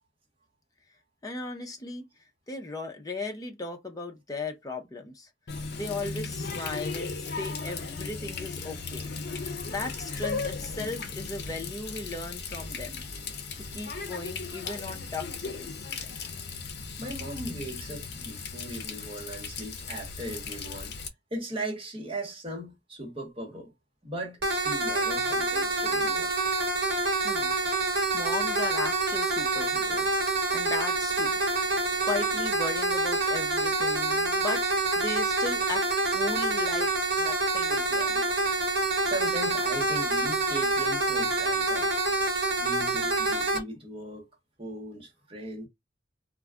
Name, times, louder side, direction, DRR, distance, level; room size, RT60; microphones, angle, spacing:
voice 1, 1.2-2.1 2.5-5.3 5.7-9.1 9.7-13.0 13.6-15.7 27.2-30.2 30.5-31.4 32.0-34.6 35.0-35.8 36.1-36.9 37.2-38.2, left 2 dB, 20° left, 0.6 m, -37 dB
Water tap faucet, 5.5-21.1, left 4 dB, 60° left, 0.6 m, -36 dB
voice 2, 17.0-21.0 21.3-23.7 24.0-26.3 39.0-41.9 42.6-44.2 44.6-45.7, right 1 dB, 30° right, 1.1 m, -38 dB
sound 1, 24.4-43.6, right 2 dB, 65° right, 1.0 m, -27 dB
2.3 x 2.1 x 3.5 m
head